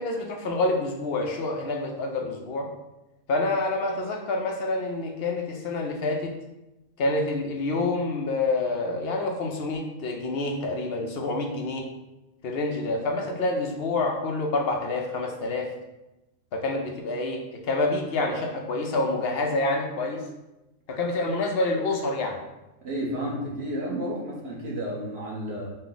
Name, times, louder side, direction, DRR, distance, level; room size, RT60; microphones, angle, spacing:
voice 1, 0.0-2.7 3.3-6.3 7.0-11.9 12.4-15.7 16.5-20.2 20.9-22.4, left 2 dB, 60° left, 2 dB, 0.7 m, -27 dB
voice 2, 22.8-25.7, equal, 50° right, -4 dB, 1.2 m, -31 dB
5.4 x 2.2 x 3.8 m, 0.99 s
omnidirectional pair, 1.5 m